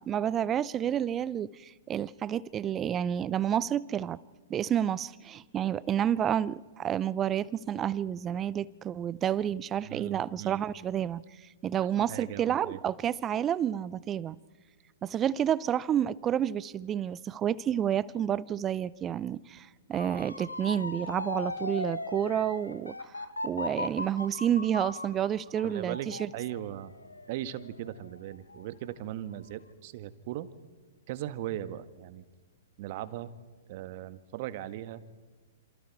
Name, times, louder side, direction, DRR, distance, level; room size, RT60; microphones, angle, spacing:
voice 1, 0.0-4.2 4.5-11.2 11.6-14.4 15.0-22.9 23.4-26.3, right 10 dB, 25° right, 0.6 m, -30 dB
voice 2, 9.8-10.6 11.8-12.8 25.6-26.9 27.3-30.5 31.1-32.2 32.8-33.3 33.7-35.0, right 13 dB, 45° right, 1.5 m, -38 dB
Motor vehicle (road) / Siren, 19.9-28.8 29.3-29.7, left 2 dB, 90° left, 1.2 m, -39 dB
27.5 x 27.5 x 4.7 m
figure-of-eight pair, 115°, 0 cm